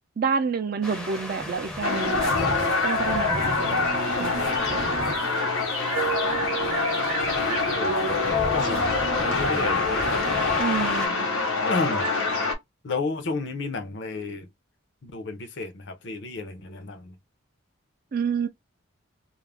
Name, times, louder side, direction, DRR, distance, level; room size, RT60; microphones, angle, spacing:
voice 1, 0.2-2.5 2.8-3.9 4.2-4.4 4.7-5.1 10.6-11.3 18.1-18.5, right 5 dB, 45° right, 0.4 m, -29 dB
sound 1, 0.8-11.1, left 1 dB, 5° left, 0.6 m, -36 dB
sound 2, 1.8-12.5, left 3 dB, 75° left, 1.0 m, -25 dB
Piano, 5.9-10.9, right 2 dB, 75° right, 0.7 m, -35 dB
voice 2, 7.4-7.9 8.3-8.9 9.2-10.2 11.6-12.1 12.8-14.5 15.0-17.2, left 3 dB, 60° left, 0.6 m, -32 dB
2.4 x 2.1 x 3.3 m
head